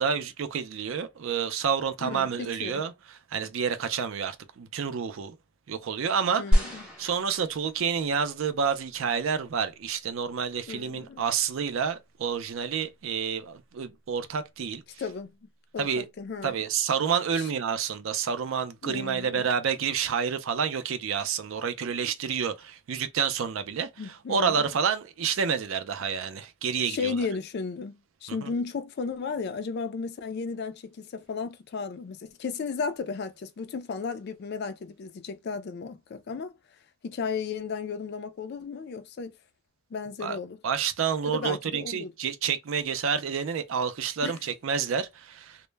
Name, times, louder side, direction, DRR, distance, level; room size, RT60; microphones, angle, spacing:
voice 1, 0.0-2.9 3.3-5.4 5.7-6.6 7.0-14.8 15.8-16.1 16.4-27.2 28.4-28.5 40.2-40.4 40.6-45.6, right 6 dB, 60° right, 0.4 m, -29 dB
voice 2, 2.0-2.8 6.4-6.9 10.7-11.2 15.0-15.5 15.7-16.6 17.3-17.5 18.8-19.4 24.0-24.7 26.8-36.5 37.0-39.3 39.9-40.6 41.2-42.1 44.2-44.4, left 5 dB, 45° left, 0.3 m, -34 dB
sound 1, 6.5-8.0 8.8-8.9, equal, 5° right, 0.7 m, -26 dB
2.1 x 2.1 x 3.2 m
head